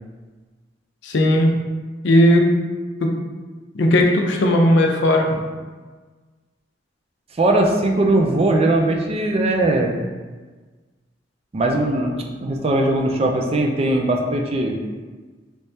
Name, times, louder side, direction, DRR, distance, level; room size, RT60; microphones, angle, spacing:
voice 1, 1.0-1.5 2.0-2.4 3.0-3.1 3.7-5.3, left 1 dB, 75° left, 1 dB, 0.5 m, -16 dB
voice 2, 7.4-9.9 11.5-14.8, right 2 dB, 35° right, 1 dB, 0.4 m, -19 dB
3.4 x 3.1 x 2.7 m, 1.4 s
head